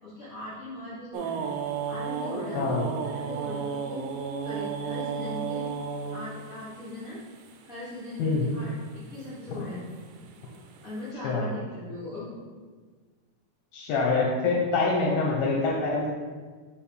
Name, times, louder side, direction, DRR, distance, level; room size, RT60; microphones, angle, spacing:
voice 1, 0.0-1.5 1.8-4.0 4.4-5.7 6.1-7.2 7.6-9.8 10.8-12.3, left 2 dB, 60° left, -12 dB, 0.8 m, -39 dB
sound 1, 1.1-8.1 8.9-9.3 9.6-10.9, right 6 dB, 90° right, 2.7 m, -33 dB
voice 2, 2.5-2.9 8.2-8.5 11.2-11.4 13.7-16.1, left 3 dB, 80° left, -2 dB, 2.2 m, -25 dB
5.8 x 3.7 x 4.7 m, 1.5 s
omnidirectional pair, 4.7 m